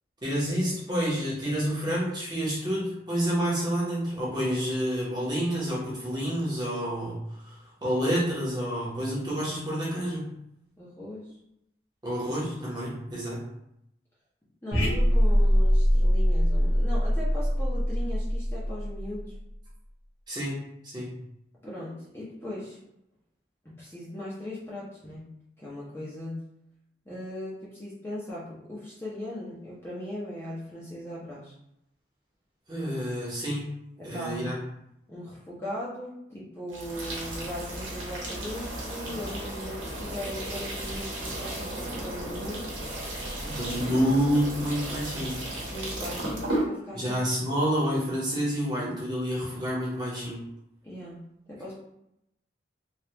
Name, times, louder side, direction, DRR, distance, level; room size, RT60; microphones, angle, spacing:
voice 1, 0.2-10.3 12.0-13.5 20.3-21.1 32.7-33.7 34.0-34.5 43.4-45.4 46.9-50.4, equal, 20° right, -7 dB, 0.9 m, -29 dB
voice 2, 10.8-11.4 14.6-19.3 21.6-22.8 23.8-25.3 25.6-26.4 27.0-31.5 34.0-34.6 35.1-42.7 45.7-47.2 50.8-51.2 51.5-51.7, left 1 dB, 15° left, -7 dB, 0.7 m, -38 dB
sound 1, 14.7-19.3, equal, 65° left, 1.1 m, -23 dB
sound 2, 36.7-46.7, right 1 dB, 90° right, 1.0 m, -34 dB
3.3 x 2.4 x 2.9 m, 0.80 s
head